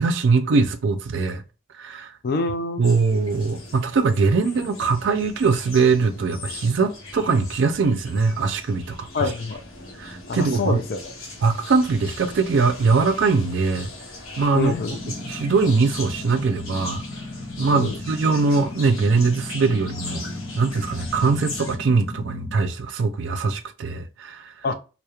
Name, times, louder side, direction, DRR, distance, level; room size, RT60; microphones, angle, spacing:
voice 1, 0.0-1.4 1.8-2.1 2.8-9.3 10.0-10.8 11.4-13.9 14.4-14.7 15.0-17.0 17.6-20.2 20.6-24.5, right 4 dB, 65° right, 0.3 m, -21 dB
voice 2, 2.2-2.9 9.1-9.6 10.3-11.0 14.5-15.0 17.7-18.0 24.6-24.7, left 4 dB, 50° left, 0.4 m, -26 dB
sound 1, 2.8-21.8, left 2 dB, 85° left, 0.7 m, -39 dB
sound 2, 14.8-22.5, left 2 dB, ahead, 0.7 m, -37 dB
2.3 x 2.1 x 2.8 m
head